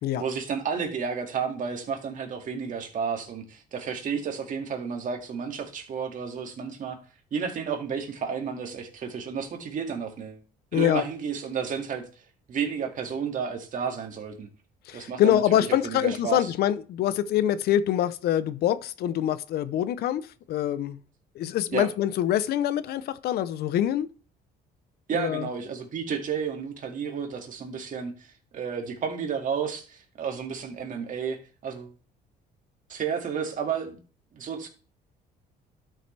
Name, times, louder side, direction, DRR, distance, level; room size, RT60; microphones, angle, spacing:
voice 1, 0.2-7.0 7.3-10.4 10.7-12.0 12.5-14.5 14.9-15.4 15.7-16.5 21.7-21.9 25.1-31.9 32.9-34.0 34.3-34.7, right 6 dB, 50° right, 2.1 m, -32 dB
voice 2, 10.7-11.0 14.9-20.2 20.5-21.0 21.3-24.1 25.1-25.5, left 11 dB, 70° left, 0.7 m, -25 dB
12.0 x 6.3 x 3.4 m
cardioid pair, 110°, 17 cm